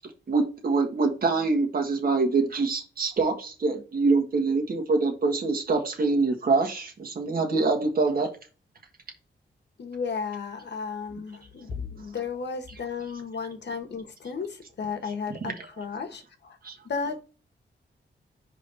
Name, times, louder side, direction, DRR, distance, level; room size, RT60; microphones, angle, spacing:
voice 1, 0.3-8.3 15.0-15.8 16.6-16.8, right 3 dB, 55° right, 1.5 m, -25 dB
voice 2, 9.8-16.6 16.8-17.2, left 5 dB, 70° left, 1.4 m, -34 dB
5.2 x 3.8 x 5.3 m
wide cardioid pair, 110°, 18 cm